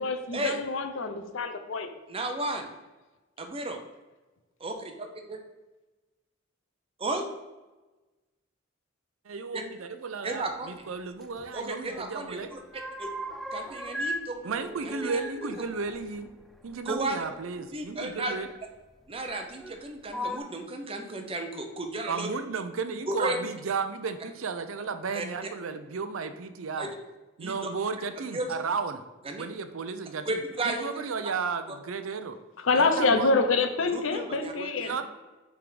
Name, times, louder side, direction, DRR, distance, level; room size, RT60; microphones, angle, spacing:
voice 1, 0.0-1.9 32.6-35.0, left 3 dB, 70° left, 7 dB, 0.7 m, -26 dB
voice 2, 2.1-2.7 3.4-3.8 4.6-5.4 7.0-7.3 9.5-9.6 10.2-10.7 11.5-12.6 13.0-13.1 13.5-14.5 14.8-15.2 16.8-17.2 17.7-18.4 19.1-22.3 23.1-23.4 25.1-25.5 26.8-26.9 27.4-27.7 28.3-28.5 29.2-29.5 30.3-31.0 33.9-35.0, right 2 dB, 30° right, 4 dB, 0.7 m, -33 dB
voice 3, 9.3-12.5 14.4-16.3 16.6-18.5 22.1-26.9 27.4-29.0 29.4-32.4 32.8-33.3 34.9-35.0, right 5 dB, 85° right, 9 dB, 0.6 m, -34 dB
sound 1, 11.2-12.1 12.4-14.3 14.5-17.0 18.1-18.2 19.2-19.7 20.1-20.4, equal, ahead, 0.3 m, -38 dB
5.9 x 3.6 x 5.0 m, 1.2 s
head